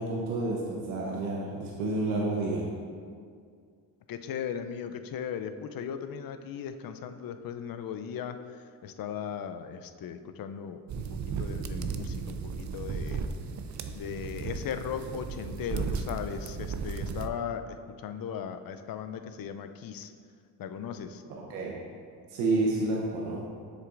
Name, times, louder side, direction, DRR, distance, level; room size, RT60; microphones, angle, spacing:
voice 1, 0.0-2.7 21.3-21.8 22.3-23.4, right 2 dB, 85° right, -3 dB, 0.9 m, -30 dB
voice 2, 4.1-13.2 13.9-20.1 20.6-21.2, left 8 dB, 50° left, 9 dB, 0.6 m, -37 dB
sound 1, 10.9-17.3, right 5 dB, 40° right, 0.5 m, -35 dB
7.3 x 6.6 x 2.5 m, 2.1 s
supercardioid pair, 55°, 47 cm